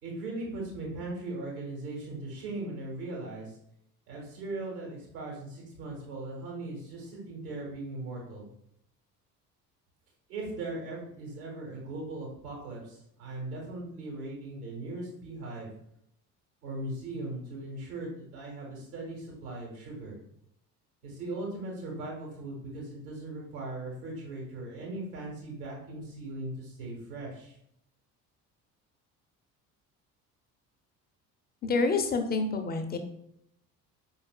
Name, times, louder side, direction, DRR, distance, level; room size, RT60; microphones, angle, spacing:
voice 1, 0.0-3.6 4.1-8.5 10.3-15.7 16.6-20.2 21.0-27.5, right 2 dB, 70° right, -3 dB, 1.7 m, -39 dB
voice 2, 31.6-33.0, left 3 dB, 20° left, 6 dB, 0.5 m, -28 dB
5.2 x 3.9 x 2.2 m, 0.73 s
figure-of-eight pair, 55°, 46 cm